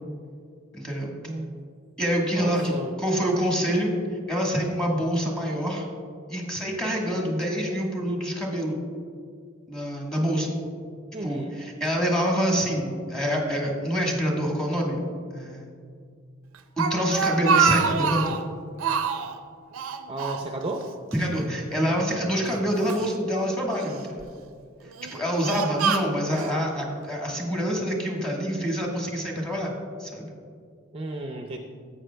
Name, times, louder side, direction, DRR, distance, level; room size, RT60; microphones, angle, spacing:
voice 1, 0.7-1.1 2.0-3.9 4.3-5.8 6.3-8.8 9.7-10.5 11.2-15.0 15.3-15.7 16.8-18.4 21.1-24.2 25.1-29.7 30.0-30.3, equal, 5° left, -1 dB, 1.3 m, -26 dB
voice 2, 2.3-3.0 11.1-11.6 20.1-20.9 22.3-22.6 30.9-31.6, right 2 dB, 30° right, 3 dB, 0.4 m, -33 dB
Speech, 16.5-18.5 18.8-19.4 19.7-20.9 21.1-21.3 22.1-23.1 23.8-24.2 24.9-26.5, right 6 dB, 90° right, 0.5 m, -26 dB
12.5 x 8.2 x 2.2 m, 2.2 s
head